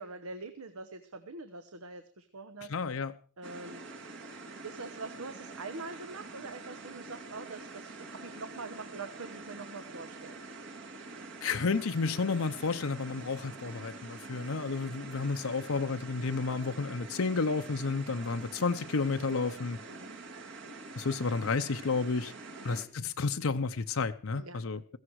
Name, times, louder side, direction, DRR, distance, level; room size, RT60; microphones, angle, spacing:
voice 1, 0.0-2.7 3.4-3.8 4.6-10.4 19.9-20.2 22.5-22.9 24.3-24.6, right 3 dB, 85° right, 1.1 m, -44 dB
voice 2, 2.7-3.1 11.4-19.8 21.0-22.3 22.6-25.0, left 4 dB, 75° left, 0.7 m, -31 dB
sound 1, 3.4-22.8, right 3 dB, 60° right, 1.9 m, -46 dB
16.0 x 15.0 x 4.7 m
head